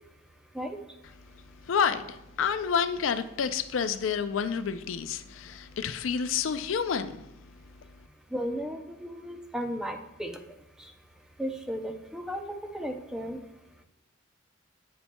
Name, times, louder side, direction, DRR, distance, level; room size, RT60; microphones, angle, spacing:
voice 1, 1.6-7.5, left 6 dB, 80° left, 0.4 m, -29 dB
voice 2, 8.3-10.4 11.4-13.4, equal, 5° right, 0.5 m, -35 dB
8.4 x 7.0 x 2.2 m
head